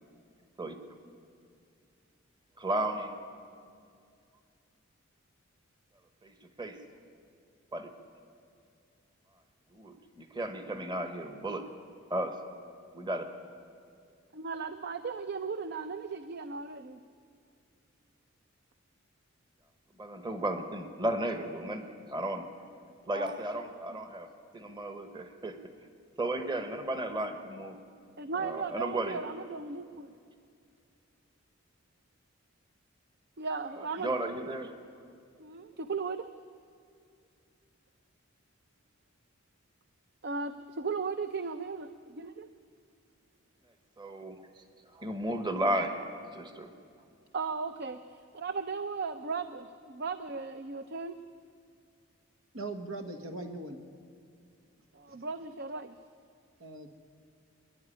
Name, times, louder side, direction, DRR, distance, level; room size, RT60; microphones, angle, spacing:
voice 1, 2.6-3.1 6.2-6.3 6.6-6.8 7.7-7.9 9.7-11.7 12.1-12.4 12.9-13.2 20.0-22.5 23.1-24.3 24.5-25.6 26.2-27.8 28.4-29.2 34.0-34.7 44.0-44.5 44.9-46.0 46.3-46.7, right 1 dB, 20° right, 7 dB, 1.2 m, -34 dB
voice 2, 14.3-17.0 23.1-24.0 28.2-30.1 33.4-34.1 35.4-36.3 40.2-42.5 47.3-51.2 54.9-56.0, right 4 dB, 50° right, 10 dB, 0.6 m, -37 dB
voice 3, 52.5-53.8 55.1-55.2 56.6-56.9, right 2 dB, 85° right, 6 dB, 1.8 m, -40 dB
25.5 x 11.0 x 10.0 m, 2.4 s
head